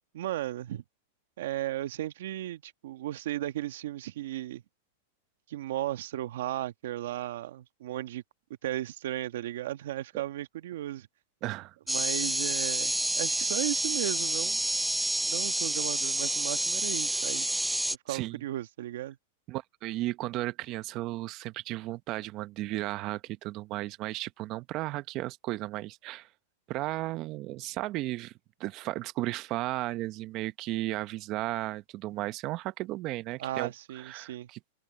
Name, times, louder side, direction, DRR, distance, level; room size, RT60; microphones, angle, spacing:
voice 1, 0.1-0.8 1.4-4.6 5.5-8.2 8.6-11.1 11.9-14.6 15.3-17.5 17.9-19.2 33.4-34.5, right 13 dB, 70° right, 1.5 m, -35 dB
voice 2, 11.4-11.7 18.1-18.4 19.5-26.3 26.7-28.3 28.6-34.6, right 17 dB, 40° right, 0.8 m, -34 dB
sound 1, 11.9-18.0, right 1 dB, 5° right, 0.4 m, -29 dB
hypercardioid pair, 140°, 0 cm